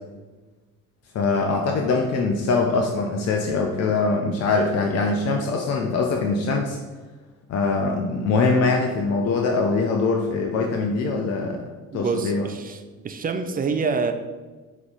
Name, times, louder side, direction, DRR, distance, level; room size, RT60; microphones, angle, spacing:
voice 1, 1.1-6.8 7.5-11.6 11.9-12.4, left 3 dB, 40° left, 2 dB, 0.7 m, -23 dB
voice 2, 11.9-14.1, right 5 dB, 20° right, 8 dB, 0.5 m, -26 dB
5.9 x 3.1 x 5.2 m, 1.3 s
figure-of-eight pair, 50°, 41 cm